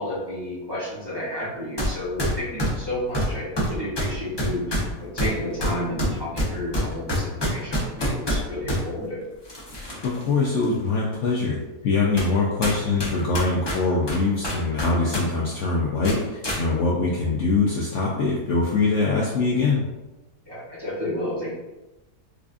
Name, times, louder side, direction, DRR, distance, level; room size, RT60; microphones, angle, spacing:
voice 1, 0.0-9.2 20.5-21.6, left 1 dB, 20° right, -9 dB, 0.7 m, -31 dB
sound 1, 1.8-1.9 2.2-8.8 9.5-10.2 10.6-10.7 11.5-11.6 12.2-12.3 12.6-15.2 15.5-15.6 16.0-16.6, equal, 35° left, 0.4 m, -26 dB
voice 2, 9.7-11.6 11.8-19.8, left 3 dB, 65° left, -4 dB, 0.7 m, -23 dB
4.8 x 2.4 x 2.4 m, 1.1 s
omnidirectional pair, 1.7 m